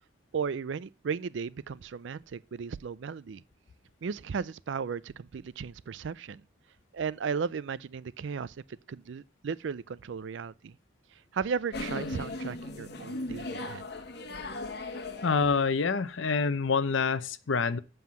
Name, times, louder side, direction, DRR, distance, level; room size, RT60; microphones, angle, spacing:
voice 1, 0.3-3.4 4.0-6.4 6.9-10.8 11.3-13.9, right 6 dB, 70° right, 0.4 m, -35 dB
sound 1, 11.7-15.9, left 2 dB, 55° left, 1.1 m, -38 dB
voice 2, 15.2-17.8, left 5 dB, 75° left, 0.7 m, -27 dB
7.6 x 5.6 x 7.2 m
head